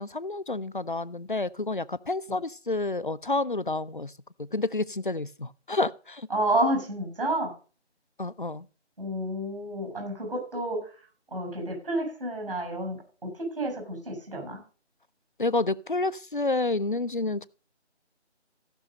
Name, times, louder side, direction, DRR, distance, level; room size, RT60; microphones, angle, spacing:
voice 1, 0.0-4.1 4.4-6.3 8.2-8.7 15.4-17.5, left 2 dB, 45° left, 0.5 m, -29 dB
voice 2, 6.3-7.5 9.0-10.8 11.3-14.6, right 1 dB, 50° right, 6.6 m, -30 dB
15.5 x 6.2 x 5.4 m
figure-of-eight pair, 170°, 35 cm